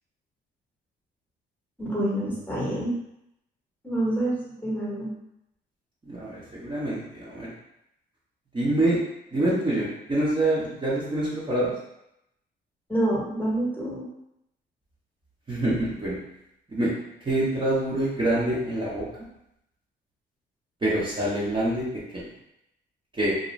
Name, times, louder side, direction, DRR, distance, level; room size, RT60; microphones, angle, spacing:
voice 1, 1.8-3.0 3.8-5.1 12.9-14.0, right 1 dB, 10° left, -6 dB, 1.1 m, -27 dB
voice 2, 6.0-7.5 8.5-9.0 9.3-11.7 15.5-16.2 16.7-16.9 17.2-19.1 20.8-21.8 22.1-22.2 23.2-23.3, right 1 dB, 25° right, -8 dB, 0.8 m, -25 dB
2.5 x 2.2 x 3.1 m, 0.82 s
cardioid pair, 90°, 20 cm